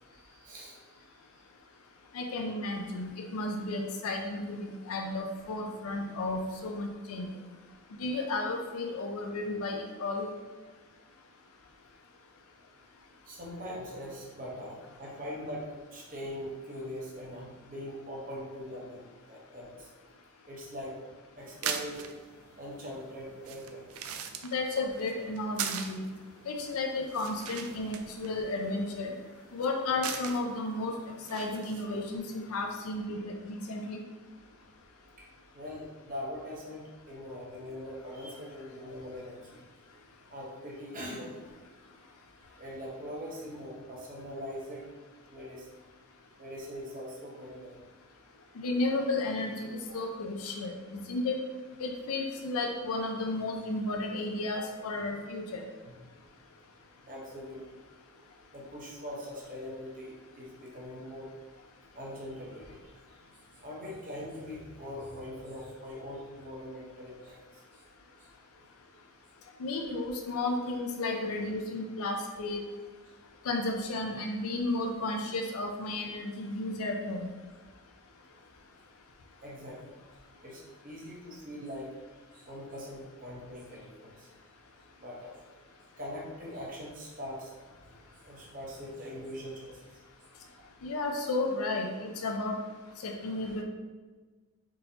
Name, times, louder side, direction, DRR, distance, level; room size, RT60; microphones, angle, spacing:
voice 1, 0.1-1.0 1.3-1.4 13.3-19.9 20.5-21.0 21.4-22.1 22.6-23.9 35.2-35.3 35.5-39.6 40.3-41.6 42.4-44.9 45.3-45.7 46.4-47.8 54.5-54.6 54.9-55.0 55.8-56.0 57.0-57.6 58.5-61.6 61.9-63.0 63.5-67.6 70.2-70.3 70.6-70.7 79.4-80.0 80.4-81.9 82.3-84.3 85.0-85.3 86.0-87.5 88.2-90.0 91.2-91.3, equal, 40° right, -3 dB, 0.9 m, -42 dB
voice 2, 2.1-7.3 8.0-10.3 24.5-26.0 26.5-29.1 29.5-30.9 31.3-34.0 48.6-51.4 51.8-55.6 69.6-72.7 73.5-77.3 90.8-92.6 93.0-93.6, left 2 dB, 80° left, 2 dB, 0.5 m, -33 dB
sound 1, 21.4-32.2, right 7 dB, 75° right, 0.4 m, -42 dB
3.9 x 3.8 x 2.8 m, 1.4 s
head